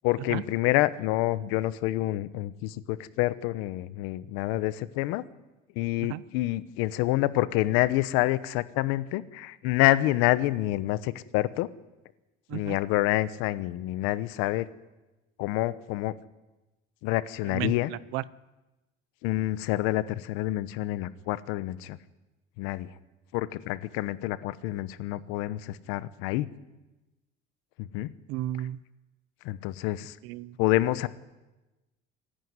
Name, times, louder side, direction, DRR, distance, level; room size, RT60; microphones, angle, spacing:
voice 1, 0.0-5.2 5.8-11.7 12.5-14.7 15.4-16.2 17.0-17.9 19.2-22.0 22.6-22.9 23.3-26.5 27.8-28.1 29.4-30.2 30.6-31.1, left 16 dB, 90° left, 16 dB, 1.0 m, -27 dB
voice 2, 17.5-18.2 28.3-28.8 30.2-30.6, right 14 dB, 70° right, 19 dB, 0.8 m, -33 dB
26.0 x 11.5 x 9.8 m, 1.1 s
cardioid pair, 175°, 20 cm